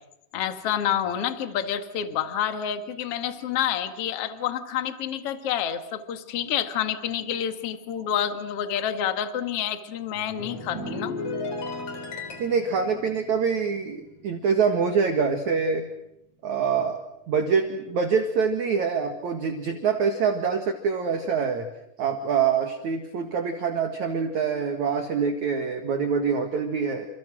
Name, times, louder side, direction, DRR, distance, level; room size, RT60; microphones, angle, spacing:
voice 1, 0.3-11.2, left 9 dB, 50° left, 8 dB, 1.7 m, -28 dB
sound 1, 10.1-14.8 15.0-15.4, left 2 dB, 35° left, 4.3 m, -36 dB
voice 2, 12.4-15.9 16.4-17.0 17.3-21.7 22.0-27.1, right 6 dB, 55° right, 6 dB, 2.3 m, -25 dB
29.5 x 27.5 x 6.2 m, 0.83 s
omnidirectional pair, 5.5 m